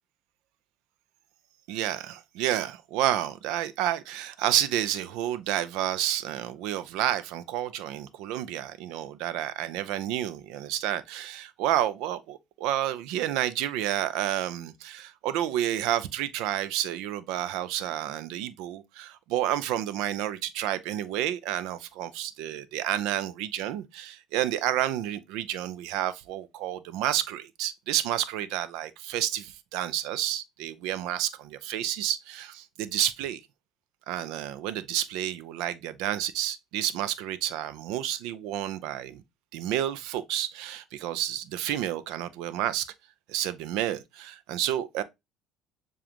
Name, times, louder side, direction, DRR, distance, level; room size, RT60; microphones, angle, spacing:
voice 1, 1.7-33.4 34.1-39.2 39.5-42.9 43.3-45.0, right 12 dB, 75° right, 0.5 m, -30 dB
7.0 x 2.4 x 2.9 m
supercardioid pair, 100°, 0 cm